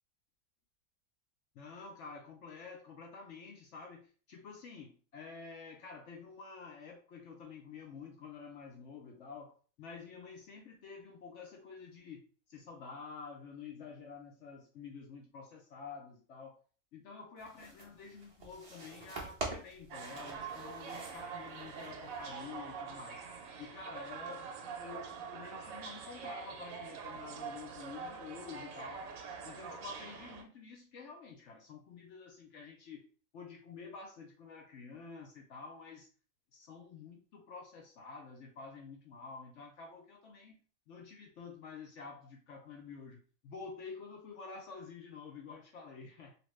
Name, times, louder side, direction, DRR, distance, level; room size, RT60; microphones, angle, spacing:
voice 1, 1.5-12.2 12.5-16.6 16.9-23.2 23.6-29.1 29.4-33.0 33.3-36.1 36.5-40.6 40.9-46.4, left 5 dB, 60° left, 0 dB, 0.8 m, -49 dB
sound 1, 17.4-22.3, right 2 dB, 45° right, 0.4 m, -46 dB
sound 2, 19.9-30.4, right 6 dB, 70° right, 0.9 m, -45 dB
2.9 x 2.5 x 3.1 m, 0.40 s
omnidirectional pair, 1.6 m